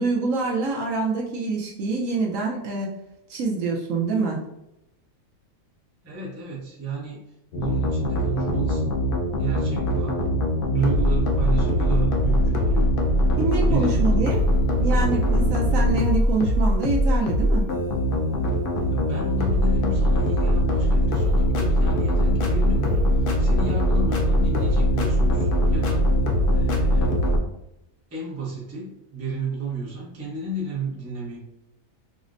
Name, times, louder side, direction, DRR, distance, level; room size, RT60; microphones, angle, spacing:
voice 1, 0.0-2.9 3.3-4.4 13.4-14.4 14.8-17.7, right 3 dB, 70° right, -2 dB, 1.0 m, -26 dB
voice 2, 6.0-7.2 7.5-8.9 9.3-10.2 10.7-12.9 13.6-14.3 18.9-26.1 26.5-27.2 28.1-31.4, right 3 dB, 15° right, -5 dB, 0.6 m, -32 dB
sound 1, 7.5-27.4, equal, 70° left, 0.5 m, -21 dB
4.8 x 2.1 x 2.5 m, 0.86 s
omnidirectional pair, 1.5 m